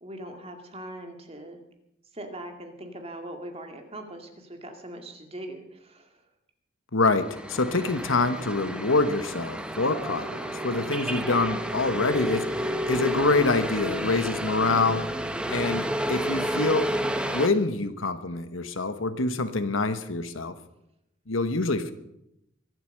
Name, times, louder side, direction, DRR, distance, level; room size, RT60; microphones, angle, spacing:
voice 1, 0.0-1.6 2.1-6.2, right 1 dB, 30° right, 4 dB, 2.2 m, -41 dB
voice 2, 6.9-12.5 12.9-15.1 15.5-16.9 17.3-20.5 21.3-21.9, left 3 dB, 80° left, 11 dB, 1.2 m, -25 dB
sound 1, 7.1-17.5, equal, 5° right, 0.9 m, -30 dB
23.0 x 8.1 x 6.5 m, 0.81 s
head